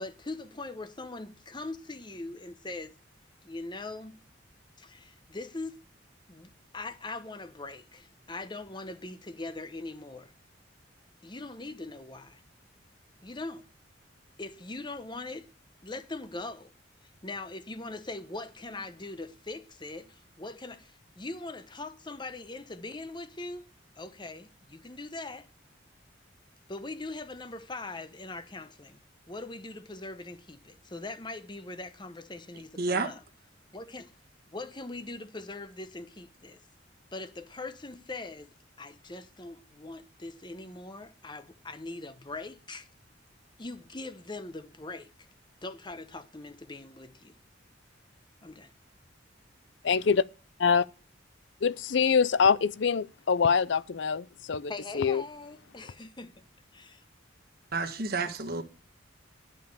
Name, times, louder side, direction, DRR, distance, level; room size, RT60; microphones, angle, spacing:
voice 1, 0.0-2.9 3.4-4.2 4.8-5.8 6.3-10.3 11.2-12.4 13.2-13.6 14.4-15.5 15.8-16.7 17.2-23.7 24.0-25.5 26.7-29.0 29.3-33.2 33.7-34.1 34.5-36.6 37.1-38.5 38.8-42.9 43.6-45.1 45.6-47.4 48.4-48.7 54.7-56.4 56.7-57.0, left 2 dB, 25° left, 0.9 m, -41 dB
voice 2, 32.8-33.1 57.7-58.6, right 3 dB, 50° right, 1.4 m, -30 dB
voice 3, 51.6-55.2, left 6 dB, 65° left, 0.5 m, -25 dB
11.5 x 5.6 x 6.8 m
head